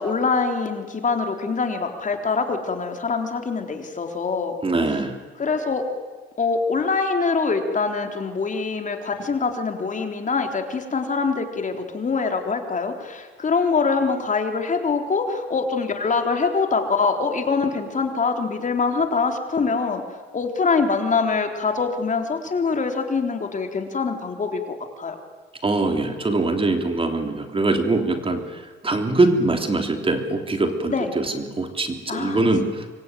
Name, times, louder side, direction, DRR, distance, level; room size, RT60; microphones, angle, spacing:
voice 1, 0.0-4.5 5.4-5.8 6.4-20.0 20.3-25.2 30.9-31.1 32.1-32.9, left 4 dB, 40° left, 4 dB, 3.7 m, -24 dB
voice 2, 4.6-5.2 25.6-32.8, right 2 dB, 25° right, 5 dB, 3.3 m, -23 dB
26.0 x 22.5 x 9.3 m, 1.4 s
cardioid pair, 90°, 20 cm